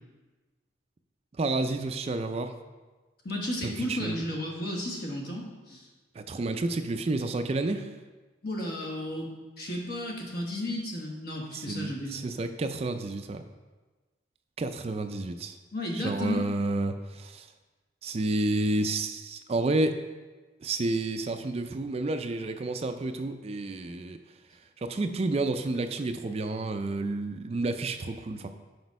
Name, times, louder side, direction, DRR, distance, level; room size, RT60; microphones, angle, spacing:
voice 1, 1.4-2.5 3.6-4.2 6.2-7.9 11.5-13.4 14.6-15.6 15.9-17.5 18.0-20.0 20.6-24.2 24.8-28.5, right 2 dB, 35° right, 8 dB, 0.4 m, -30 dB
voice 2, 3.2-5.9 8.4-9.3 9.6-12.2 15.7-16.5, left 1 dB, 55° left, -1 dB, 1.4 m, -33 dB
6.1 x 5.0 x 5.3 m, 1.3 s
head